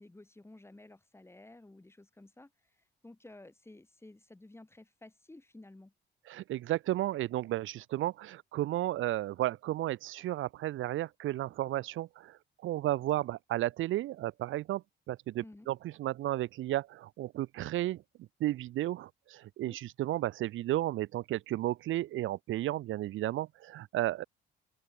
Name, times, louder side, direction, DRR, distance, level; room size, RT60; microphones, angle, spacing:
voice 1, 0.0-5.9 15.4-15.7 19.6-19.8, left 2 dB, 10° left, 4.9 m, -54 dB
voice 2, 6.3-24.2, right 15 dB, 80° right, 1.3 m, -33 dB
open air
cardioid pair, 90°, 20 cm